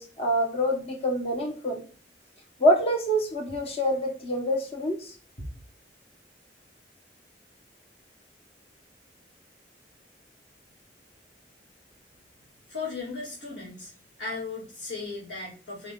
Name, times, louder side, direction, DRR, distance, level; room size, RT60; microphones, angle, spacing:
voice 1, 0.0-1.8 2.6-5.2, equal, 35° left, 1.1 m, -26 dB
voice 2, 12.7-13.9 14.2-15.9, left 3 dB, 80° left, 2.2 m, -36 dB
4.8 x 2.7 x 3.6 m
head